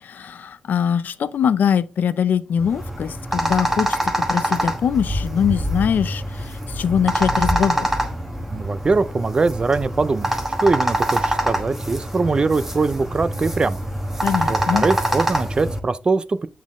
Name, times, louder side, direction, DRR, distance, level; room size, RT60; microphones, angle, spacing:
voice 1, 0.0-7.9 14.2-14.8, left 8 dB, 80° left, 0.5 m, -22 dB
sound 1, 2.6-15.8, right 1 dB, 10° right, 1.2 m, -24 dB
voice 2, 8.5-10.3 10.6-13.8 14.5-16.5, right 4 dB, 30° right, 0.4 m, -22 dB
8.4 x 3.9 x 3.6 m
wide cardioid pair, 145°, 3 cm